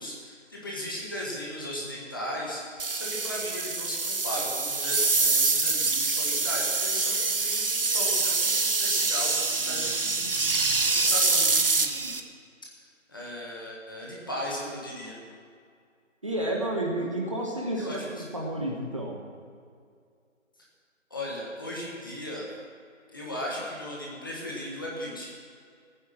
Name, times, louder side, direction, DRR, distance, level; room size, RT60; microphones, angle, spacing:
voice 1, 0.0-9.4 9.6-12.2 13.1-15.2 17.8-18.2 21.1-22.5 23.1-25.3, left 1 dB, 15° left, -4 dB, 1.4 m, -36 dB
sound 1, 2.8-12.2, right 3 dB, 45° right, 0.9 m, -25 dB
voice 2, 16.2-19.2, right 1 dB, 25° right, -2 dB, 1.2 m, -31 dB
15.5 x 9.5 x 7.3 m, 2.2 s
figure-of-eight pair, 175°, 39 cm